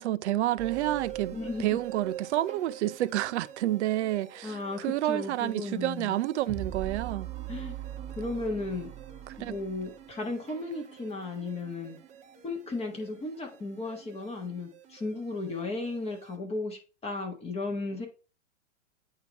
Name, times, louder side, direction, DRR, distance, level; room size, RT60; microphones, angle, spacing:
voice 1, 0.0-7.3 9.3-9.6, right 14 dB, 65° right, 0.5 m, -29 dB
sound 1, 0.6-16.4, right 11 dB, 20° right, 0.6 m, -43 dB
voice 2, 1.3-1.8 4.4-6.1 7.5-7.8 8.2-8.9 9.4-12.0 12.4-18.1, left 3 dB, 15° left, 1.4 m, -35 dB
8.3 x 2.8 x 4.6 m
hypercardioid pair, 120°, 37 cm